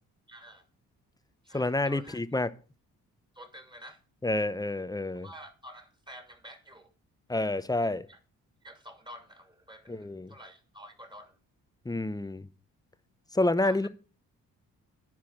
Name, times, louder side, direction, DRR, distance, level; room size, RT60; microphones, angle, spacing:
voice 1, 0.3-0.7 1.4-2.2 3.3-4.0 5.2-6.9 7.8-8.2 8.6-11.4 13.6-13.9, equal, 10° right, 2.7 m, -49 dB
voice 2, 1.5-2.5 4.2-5.3 7.3-8.0 9.9-10.3 11.9-12.5 13.3-13.9, left 2 dB, 10° left, 0.7 m, -28 dB
10.5 x 4.8 x 7.4 m
supercardioid pair, 50°, 39 cm